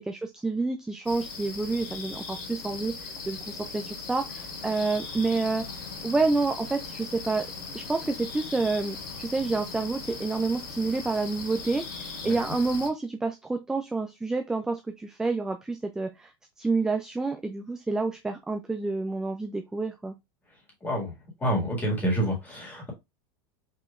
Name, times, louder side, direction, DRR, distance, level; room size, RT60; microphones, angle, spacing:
voice 1, 0.0-5.6 6.0-7.5 7.7-16.3 16.6-20.1, right 3 dB, 5° right, 0.3 m, -29 dB
sound 1, 1.0-12.9, left 4 dB, 85° left, 2.7 m, -39 dB
voice 2, 20.8-21.1 21.4-22.9, right 1 dB, 15° left, 1.9 m, -27 dB
5.6 x 3.0 x 2.4 m
supercardioid pair, 155°, 12 cm